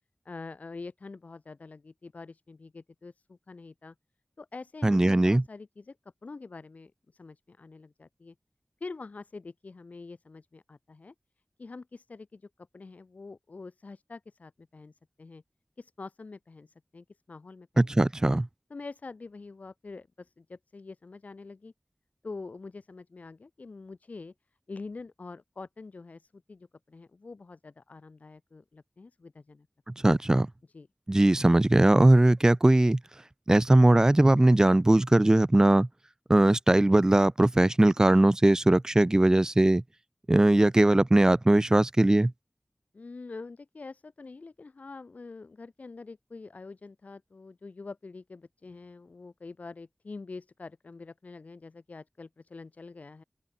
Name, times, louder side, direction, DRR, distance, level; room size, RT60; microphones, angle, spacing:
voice 1, 0.2-3.9 4.4-6.0 6.2-8.3 8.8-11.1 11.6-15.4 15.8-17.9 18.7-21.7 22.2-24.3 24.7-29.7 30.7-30.9 42.9-53.2, left 3 dB, 80° left, 1.0 m, -45 dB
voice 2, 4.8-5.4 17.8-18.5 29.9-30.5 31.1-33.0 33.5-35.9 36.3-39.8 40.3-42.3, right 1 dB, 25° right, 0.4 m, -20 dB
wide cardioid pair, 55°, 3 cm